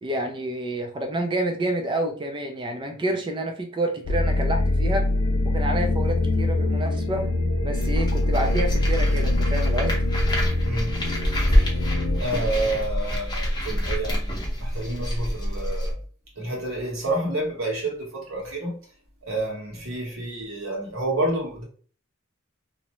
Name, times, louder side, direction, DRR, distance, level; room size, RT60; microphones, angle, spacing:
voice 1, 0.0-5.1 5.5-7.3 7.6-9.9, right 1 dB, 25° right, 0.4 m, -28 dB
sound 1, 4.1-12.2, left 2 dB, 70° left, 0.5 m, -24 dB
sound 2, 7.7-15.9, equal, 20° left, 0.7 m, -26 dB
voice 2, 10.6-11.0 11.5-11.8 12.2-15.9 16.4-18.8 19.2-21.6, right 1 dB, 70° right, 1.2 m, -29 dB
2.7 x 2.0 x 3.0 m
head